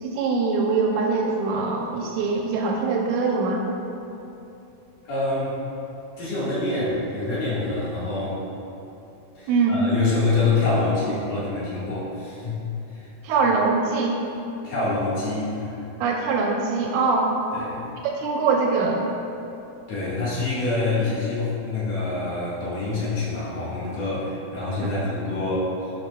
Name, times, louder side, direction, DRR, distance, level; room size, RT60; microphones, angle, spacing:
voice 1, 0.0-3.6 9.5-9.8 13.2-14.2 16.0-17.3 18.0-19.1, right 4 dB, 90° right, 0 dB, 2.2 m, -23 dB
voice 2, 5.1-5.5 6.2-8.4 9.3-12.6 12.9-13.1 14.6-15.7 17.5-17.9 19.9-25.9, left 3 dB, 65° left, -9 dB, 2.9 m, -26 dB
12.5 x 5.4 x 2.2 m, 2.9 s
omnidirectional pair, 3.5 m